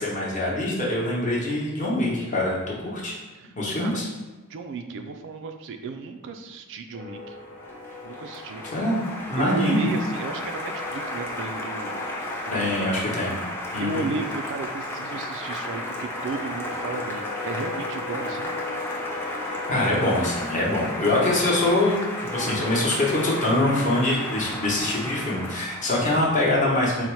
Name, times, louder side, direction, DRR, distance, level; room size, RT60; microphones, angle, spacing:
voice 1, 0.0-3.1 3.6-4.1 8.7-9.0 9.3-9.9 12.5-13.3 13.7-14.1 19.7-27.0, left 1 dB, 35° left, -4 dB, 0.9 m, -24 dB
voice 2, 3.4-4.0 4.5-7.4 8.0-8.6 9.4-12.9 13.8-18.5, right 4 dB, 60° right, 6 dB, 0.3 m, -34 dB
sound 1, 6.9-9.5 9.7-13.4 13.7-22.8, left 2 dB, 60° left, 0.8 m, -38 dB
Applause, 7.3-26.2, left 1 dB, 10° left, 0.5 m, -34 dB
4.1 x 2.0 x 4.5 m, 1.2 s
head